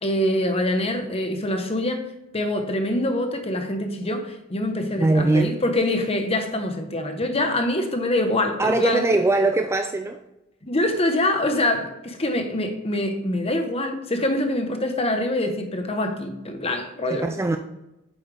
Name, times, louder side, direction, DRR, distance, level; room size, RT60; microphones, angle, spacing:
voice 1, 0.0-2.0 2.3-9.1 10.6-17.3, left 1 dB, 30° left, 6 dB, 1.0 m, -25 dB
voice 2, 5.0-5.6 8.6-10.2 17.2-17.6, right 2 dB, 15° right, 6 dB, 0.4 m, -21 dB
8.6 x 7.3 x 3.4 m, 0.89 s
head